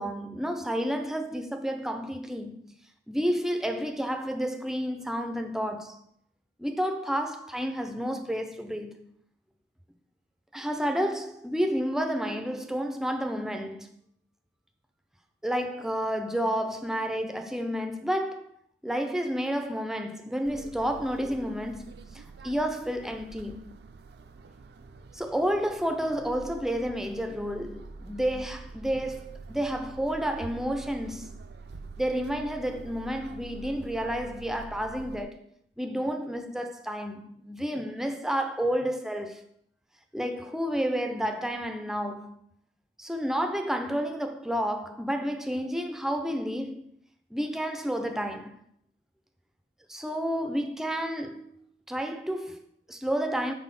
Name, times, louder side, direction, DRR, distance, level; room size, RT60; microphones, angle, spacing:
voice 1, 0.0-2.7 3.1-6.0 6.6-9.1 10.5-14.0 15.4-18.5 18.8-23.7 25.1-31.4 32.0-35.5 35.8-39.4 40.1-42.4 43.0-46.9 47.3-48.5 49.9-51.5 51.9-53.5, equal, 5° right, 0.4 m, -30 dB
sound 1, 20.4-35.2, right 4 dB, 65° right, 0.4 m, -46 dB
4.1 x 4.1 x 5.6 m
head